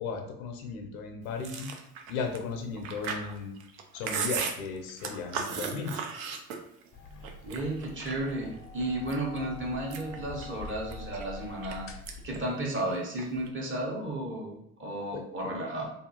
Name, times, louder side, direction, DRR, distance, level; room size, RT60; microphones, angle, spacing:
voice 1, 0.0-1.7 2.1-3.5 3.9-6.0 15.1-15.2, left 5 dB, 85° left, 3 dB, 0.5 m, -35 dB
Chewing mastication, 1.4-6.9 7.2-8.3 8.8-9.4 9.7-11.7 12.1-12.4 12.7-13.5, right 6 dB, 75° right, 0.5 m, -36 dB
sound 1, 6.9-12.4, left 3 dB, 35° left, 0.5 m, -45 dB
voice 2, 7.4-11.9 12.2-15.9, right 1 dB, 30° right, -3 dB, 1.1 m, -33 dB
2.6 x 2.4 x 2.7 m, 0.76 s
hypercardioid pair, 50°, 41 cm